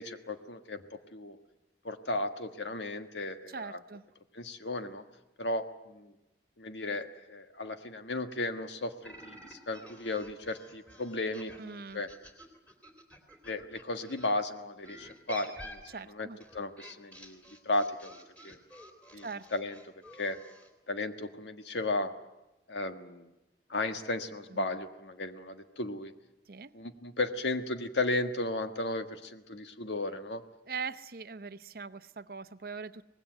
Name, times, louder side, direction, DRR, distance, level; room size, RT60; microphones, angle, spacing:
voice 1, 0.0-1.4 1.8-3.8 4.3-5.0 5.4-6.1 6.6-12.1 13.4-16.3 16.5-18.2 18.4-18.6 19.1-19.8 20.1-20.4 20.9-22.1 22.7-23.3 23.7-26.1 26.7-30.4, left 2 dB, 90° left, 7 dB, 1.6 m, -35 dB
voice 2, 3.5-4.0 11.6-12.0 15.9-16.4 19.2-19.5 24.5-24.6 26.5-26.7 30.7-33.1, right 5 dB, 55° right, 13 dB, 0.8 m, -41 dB
sound 1, 9.0-14.3 14.8-20.7, equal, 10° left, 3.3 m, -50 dB
24.5 x 19.5 x 9.1 m, 1.0 s
head